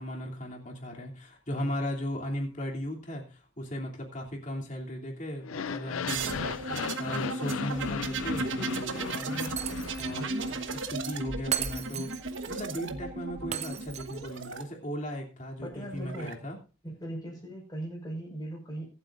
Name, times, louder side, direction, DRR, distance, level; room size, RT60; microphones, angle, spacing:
voice 1, 0.0-9.5 10.0-12.1 12.4-16.6, equal, 35° left, 0 dB, 2.9 m, -37 dB
sound 1, 5.4-10.6, left 6 dB, 85° left, 0.5 m, -37 dB
sound 2, 6.1-14.6 15.7-16.3, right 3 dB, 70° right, 1.3 m, -35 dB
Shatter, 9.6-10.2 10.5-10.6 11.5-12.5 13.5-14.5, right 9 dB, 30° right, 0.6 m, -35 dB
voice 2, 15.6-16.3 16.8-18.8, right 1 dB, 20° left, 0 dB, 5.4 m, -39 dB
23.5 x 8.2 x 2.6 m, 0.33 s
head